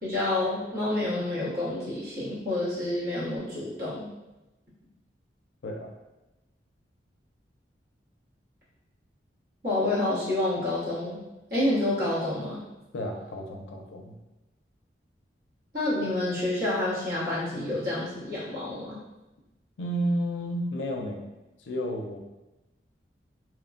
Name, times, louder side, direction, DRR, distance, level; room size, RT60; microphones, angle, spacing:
voice 1, 0.0-4.0 9.6-11.2 11.5-12.6 15.7-19.0, left 1 dB, 55° right, -9 dB, 1.1 m, -28 dB
voice 2, 12.9-14.2 19.8-21.2 21.6-22.2, equal, 85° left, 2 dB, 0.4 m, -31 dB
2.9 x 2.1 x 2.4 m, 1.0 s
head